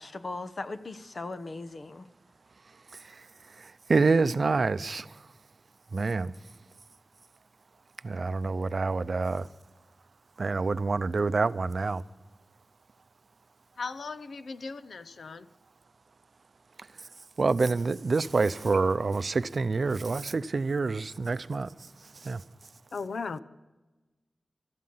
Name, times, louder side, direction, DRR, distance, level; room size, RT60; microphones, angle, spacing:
voice 1, 0.0-2.1, left 3 dB, 55° left, 0.9 m, -38 dB
voice 2, 3.6-5.1 5.9-6.3 8.0-9.5 10.4-12.0 17.4-21.7 22.2-22.4, right 4 dB, 60° right, 0.5 m, -27 dB
voice 3, 13.8-15.5 22.9-23.4, left 4 dB, 85° left, 0.7 m, -37 dB
16.0 x 13.0 x 5.5 m
wide cardioid pair, 75°, 0 cm